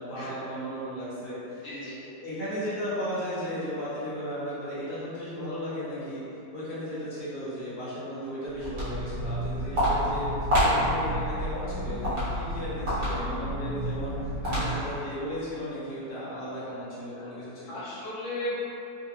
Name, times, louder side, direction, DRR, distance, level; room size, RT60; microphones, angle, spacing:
voice 1, 0.0-1.6 2.2-6.2 6.5-10.3 10.6-14.2 14.4-17.8, equal, 35° left, -11 dB, 0.8 m, -35 dB
voice 2, 1.6-2.0 10.6-10.8 14.4-14.8 17.2-17.3 17.7-18.5, left 1 dB, 85° left, -10 dB, 0.6 m, -36 dB
Walk footsteps, 8.5-15.0, equal, 60° right, 1.7 m, -28 dB
3.8 x 2.1 x 2.8 m, 2.9 s
omnidirectional pair, 2.0 m